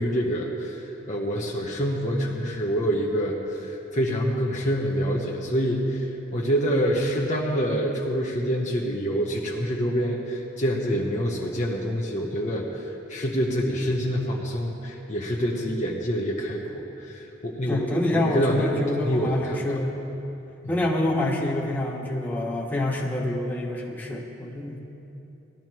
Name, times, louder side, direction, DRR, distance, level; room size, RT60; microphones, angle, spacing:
voice 1, 0.0-12.8 13.1-19.6, equal, 40° left, -2 dB, 1.0 m, -26 dB
voice 2, 17.7-20.0 20.7-24.8, left 1 dB, 10° left, -4 dB, 1.5 m, -27 dB
19.5 x 12.5 x 3.0 m, 2.9 s
head